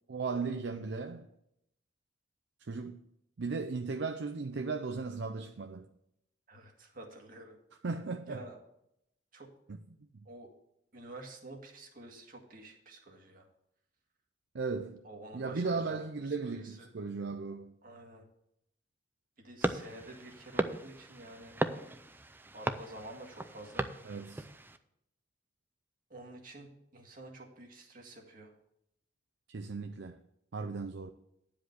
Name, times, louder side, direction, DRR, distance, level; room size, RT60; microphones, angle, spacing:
voice 1, 0.1-1.3 2.6-3.0 3.4-5.9 7.8-8.5 9.7-10.1 14.5-15.0 15.3-17.7 24.0-24.5 29.5-30.2 30.5-31.1, right 4 dB, 70° right, 0.5 m, -36 dB
voice 2, 6.5-7.6 8.3-8.6 9.3-9.5 10.3-10.5 10.9-13.5 15.0-16.9 17.8-18.2 19.4-21.6 22.5-23.9 26.1-28.5, right 2 dB, 50° right, 1.9 m, -49 dB
sound 1, 19.6-24.8, right 1 dB, 10° right, 0.5 m, -37 dB
10.5 x 5.1 x 7.9 m
head